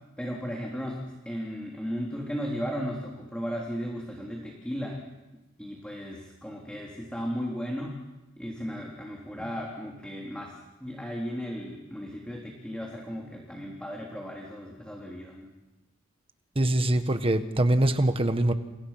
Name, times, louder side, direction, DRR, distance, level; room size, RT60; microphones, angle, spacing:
voice 1, 0.2-5.0 5.6-8.0 8.4-10.5 10.8-15.5, equal, 5° left, -1 dB, 3.6 m, -35 dB
voice 2, 16.5-18.5, right 1 dB, 25° right, 8 dB, 1.6 m, -23 dB
30.0 x 30.0 x 5.9 m, 1.1 s
head